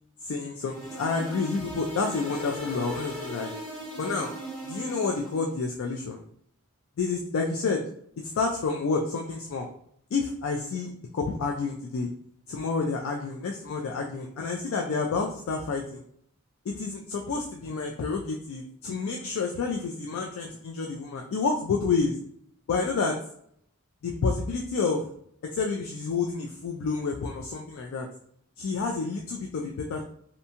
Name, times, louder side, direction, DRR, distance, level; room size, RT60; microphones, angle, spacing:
voice 1, 0.2-3.5 4.0-4.3 4.7-6.2 7.0-7.8 8.4-9.7 10.1-12.1 12.5-16.0 16.7-22.1 22.7-23.2 24.0-25.0 25.5-28.1 28.6-30.0, left 4 dB, 70° left, 1 dB, 0.3 m, -29 dB
sound 1, 0.6-5.4, right 1 dB, 5° left, 0.8 m, -38 dB
2.6 x 2.2 x 2.8 m, 0.67 s
head